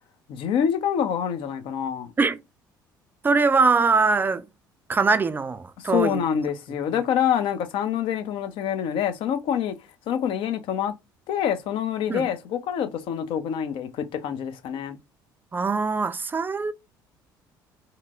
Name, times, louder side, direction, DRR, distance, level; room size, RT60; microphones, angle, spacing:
voice 1, 0.3-2.1 5.8-9.7 10.1-10.9 11.3-15.0, left 9 dB, 55° left, 0.5 m, -26 dB
voice 2, 3.2-4.5 4.9-6.2 6.9-7.0 12.1-12.3 15.5-16.7, right 4 dB, 20° right, 0.4 m, -22 dB
2.9 x 2.6 x 2.4 m
figure-of-eight pair, 55°, 10 cm